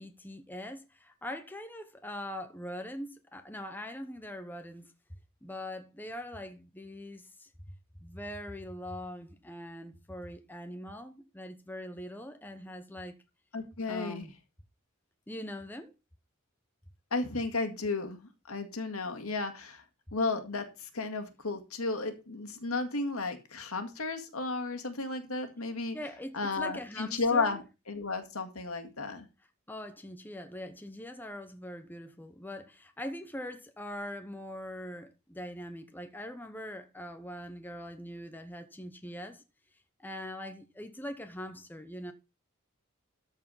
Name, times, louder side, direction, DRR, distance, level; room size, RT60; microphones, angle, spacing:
voice 1, 0.0-4.9 5.4-7.5 8.0-13.2 13.9-14.4 15.3-15.9 25.9-27.6 29.7-39.4 40.0-42.1, left 1 dB, 10° left, 0.9 m, -42 dB
voice 2, 13.5-14.3 17.1-19.8 20.1-26.0 26.3-29.3, left 3 dB, 75° left, 2.0 m, -33 dB
13.5 x 4.7 x 5.6 m
head